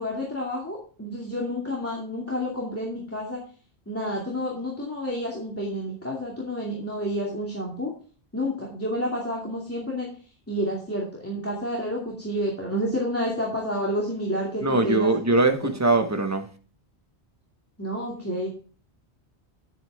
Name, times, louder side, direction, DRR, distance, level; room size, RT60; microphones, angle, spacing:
voice 1, 0.0-3.4 3.9-7.9 8.3-10.1 10.5-15.1 15.6-15.7 17.8-18.5, equal, 10° left, 2.4 m, -29 dB
voice 2, 14.6-16.5, right 2 dB, 15° right, 1.1 m, -21 dB
10.5 x 9.2 x 3.6 m
omnidirectional pair, 1.1 m